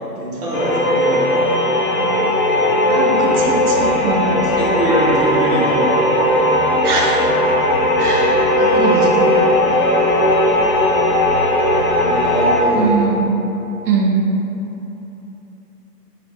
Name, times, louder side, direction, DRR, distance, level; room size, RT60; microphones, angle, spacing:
voice 1, 0.2-1.6 4.3-6.0 12.0-13.1, right 1 dB, 25° right, -8 dB, 0.8 m, -23 dB
sound 1, 0.5-12.6, left 1 dB, 55° left, 0.8 m, -16 dB
voice 2, 2.9-4.3 6.8-7.4 8.0-9.5 12.7-13.2 13.9-14.2, right 3 dB, 65° right, -1 dB, 0.9 m, -21 dB
4.1 x 3.5 x 3.7 m, 3.0 s
figure-of-eight pair, 135°, 49 cm